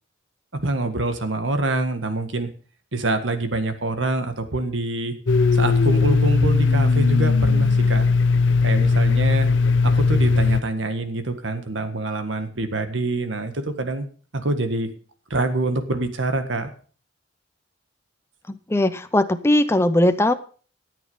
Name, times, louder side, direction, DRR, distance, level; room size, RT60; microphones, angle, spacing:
voice 1, 0.6-2.5 2.9-5.2 5.5-8.1 8.6-9.5 9.8-14.1 14.3-14.9 15.3-16.7, right 2 dB, 80° right, 8 dB, 1.7 m, -25 dB
Domestic sounds home sounds, 5.3-10.6, left 4 dB, 75° left, 0.7 m, -18 dB
voice 2, 18.5-20.3, left 1 dB, 15° left, 10 dB, 0.6 m, -19 dB
13.5 x 8.7 x 5.6 m, 0.41 s
head